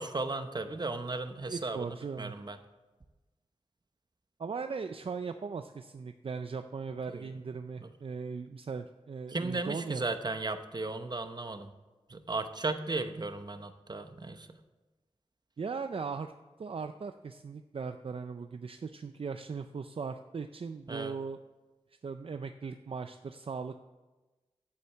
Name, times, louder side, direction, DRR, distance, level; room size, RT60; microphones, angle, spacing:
voice 1, 0.0-1.9 2.2-2.6 7.1-7.3 7.8-7.9 9.3-11.7 12.1-14.6 20.9-21.1, right 3 dB, 40° right, 8 dB, 0.8 m, -35 dB
voice 2, 1.5-2.3 4.4-10.0 15.6-16.3 16.6-21.4 22.0-23.8, right 5 dB, 60° right, 8 dB, 0.4 m, -38 dB
8.5 x 7.8 x 7.1 m, 1.2 s
wide cardioid pair, 75°, 11 cm